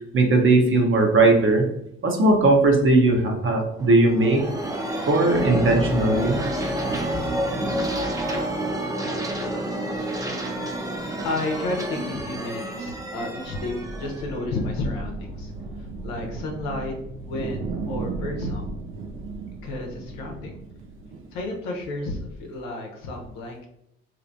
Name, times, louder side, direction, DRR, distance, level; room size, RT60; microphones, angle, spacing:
voice 1, 0.1-1.7 2.0-4.5 5.1-6.4, right 2 dB, 40° right, 2 dB, 0.9 m, -18 dB
sound 1, 3.8-15.3, right 1 dB, 10° right, 0.7 m, -29 dB
voice 2, 11.2-16.9 17.2-18.8 19.6-20.6 21.3-23.6, left 2 dB, 85° left, 1 dB, 0.8 m, -32 dB
sound 2, 13.2-21.6, right 3 dB, 80° right, 0.5 m, -36 dB
3.2 x 2.8 x 2.6 m, 0.78 s
supercardioid pair, 60°, 30 cm